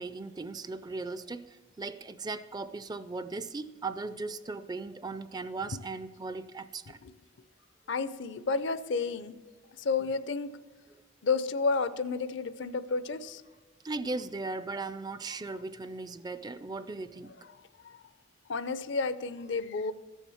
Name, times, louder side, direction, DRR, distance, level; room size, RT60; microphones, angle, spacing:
voice 1, 0.0-7.0 13.8-17.6, right 3 dB, 20° right, 0.4 m, -38 dB
voice 2, 7.9-9.4 9.8-10.5 11.2-13.4 18.5-19.9, left 4 dB, 60° left, 0.6 m, -31 dB
14.5 x 7.2 x 7.0 m
head